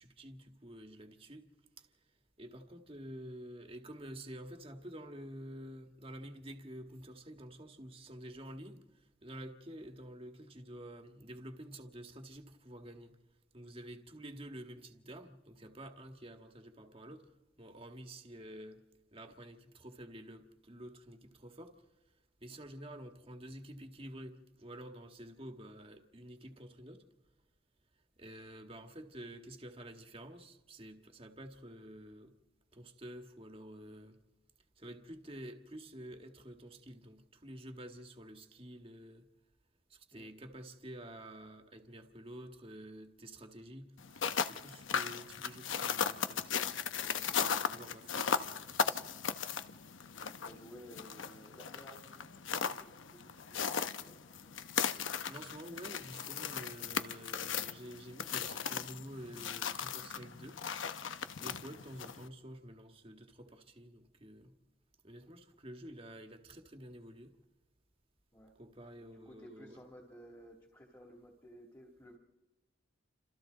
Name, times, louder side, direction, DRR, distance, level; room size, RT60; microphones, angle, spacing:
voice 1, 0.0-1.5 1.8-13.2 13.5-18.8 19.1-21.8 22.4-27.1 28.2-32.4 32.7-34.2 34.8-39.3 39.9-46.6 46.9-49.1 55.3-60.6 61.4-64.5 65.0-67.4 68.6-69.8, right 1 dB, 30° right, 1.8 m, -49 dB
sound 1, 44.0-62.3, left 7 dB, 75° left, 0.9 m, -37 dB
voice 2, 47.5-47.9 50.2-54.6 61.7-61.8 68.3-68.5 69.1-72.2, equal, 15° left, 2.7 m, -56 dB
29.5 x 26.5 x 4.0 m
head